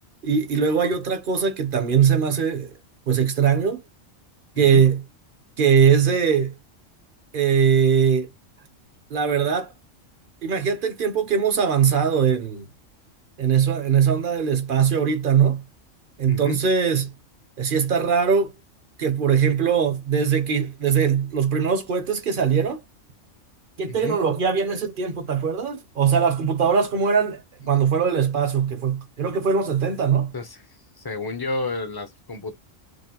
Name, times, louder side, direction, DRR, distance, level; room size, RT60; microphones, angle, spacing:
voice 1, 0.2-2.7 3.1-3.8 4.6-5.0 5.6-6.5 7.3-8.3 9.1-9.7 10.4-12.7 13.4-15.6 16.2-17.1 17.6-18.5 19.0-22.8 23.8-30.3, right 7 dB, 50° right, 0.8 m, -21 dB
voice 2, 16.3-16.6 23.9-24.2 30.3-30.6 31.0-32.6, left 3 dB, 25° left, 0.5 m, -31 dB
4.9 x 2.0 x 3.8 m
omnidirectional pair, 1.3 m